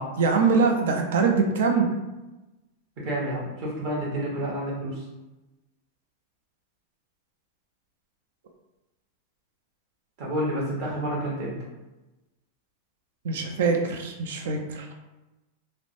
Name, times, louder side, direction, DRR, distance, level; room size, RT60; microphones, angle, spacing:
voice 1, 0.2-1.9 13.2-14.9, right 5 dB, 75° right, 3 dB, 0.5 m, -23 dB
voice 2, 3.0-5.0 10.2-11.6, right 1 dB, 45° right, -5 dB, 1.0 m, -29 dB
3.2 x 2.0 x 2.6 m, 1.1 s
supercardioid pair, 160°, 0 cm